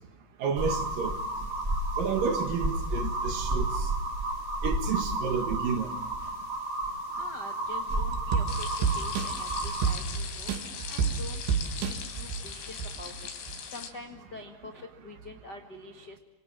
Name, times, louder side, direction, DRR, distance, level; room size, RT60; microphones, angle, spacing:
voice 1, 0.4-1.2 2.0-3.9 4.6-5.9, right 6 dB, 60° right, 2.7 m, -30 dB
sound 1, 0.6-9.9, right 1 dB, 20° right, 2.8 m, -32 dB
voice 2, 7.2-10.5 10.9-11.4 11.8-13.1 13.7-16.2, left 2 dB, 55° left, 1.1 m, -45 dB
sound 2, 7.9-13.1 13.5-13.6, right 6 dB, 80° right, 4.6 m, -31 dB
sound 3, 8.5-13.9, left 7 dB, 80° left, 5.1 m, -40 dB
27.0 x 27.0 x 7.4 m
omnidirectional pair, 5.1 m